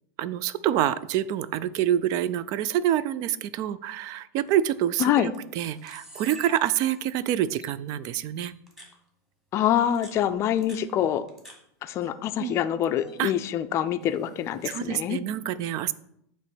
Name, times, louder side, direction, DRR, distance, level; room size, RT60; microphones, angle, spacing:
voice 1, 0.2-8.5 12.4-12.5 13.2-13.3 14.7-15.9, right 11 dB, 40° right, 17 dB, 0.4 m, -27 dB
Camera, 4.5-4.7 5.3-5.4 5.6-7.2 7.6-7.7 8.4-8.9 9.8-11.6 11.9-12.6 12.9-13.2 14.0-14.9, right 1 dB, 5° right, 1.4 m, -48 dB
voice 2, 5.0-5.3 9.5-11.3 11.8-15.2, left 10 dB, 30° left, 10 dB, 0.5 m, -25 dB
8.2 x 3.1 x 6.1 m, 0.73 s
supercardioid pair, 145°, 9 cm